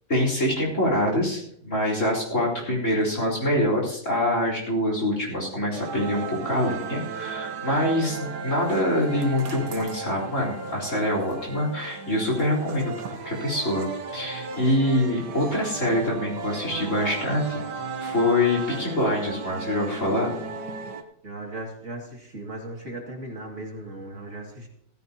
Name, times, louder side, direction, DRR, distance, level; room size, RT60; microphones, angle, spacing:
voice 1, 0.1-12.9 13.2-17.6 18.0-20.3, left 1 dB, 45° left, -2 dB, 4.3 m, -25 dB
sound 1, 5.7-21.0, right 5 dB, 70° right, 1.7 m, -35 dB
voice 2, 21.2-24.7, right 1 dB, 45° right, -1 dB, 2.6 m, -37 dB
16.0 x 15.0 x 2.9 m, 0.67 s
omnidirectional pair, 1.9 m